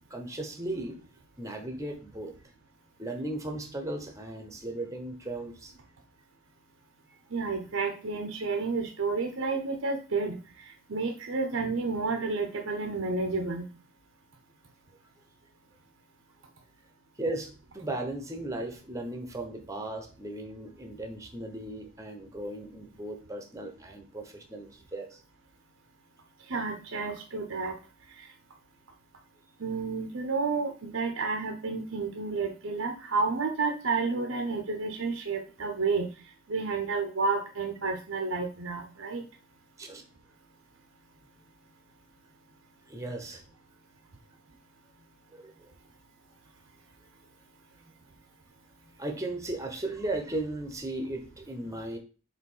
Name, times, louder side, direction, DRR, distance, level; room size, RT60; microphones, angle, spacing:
voice 1, 0.1-1.0 1.4-2.3 3.0-5.7 17.2-25.2 39.8-40.0 42.9-43.4 45.3-45.7 47.8-47.9 49.0-52.0, right 2 dB, 15° right, 5 dB, 0.9 m, -36 dB
voice 2, 7.3-10.4 10.9-13.6 26.5-27.7 28.2-28.3 29.6-36.1 36.5-39.2, right 4 dB, 70° right, 3 dB, 0.8 m, -30 dB
4.9 x 3.7 x 5.4 m, 0.36 s
head